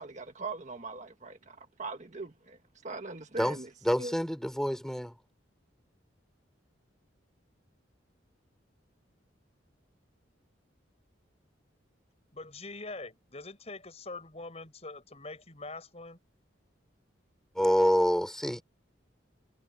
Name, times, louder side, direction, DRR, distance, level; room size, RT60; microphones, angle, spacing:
voice 1, 0.0-2.6 2.8-3.7 4.0-4.1, right 3 dB, 40° right, 1.6 m, -41 dB
voice 2, 3.8-5.1 17.6-18.6, equal, 5° left, 3.9 m, -27 dB
voice 3, 12.3-16.2, left 3 dB, 35° left, 5.8 m, -43 dB
head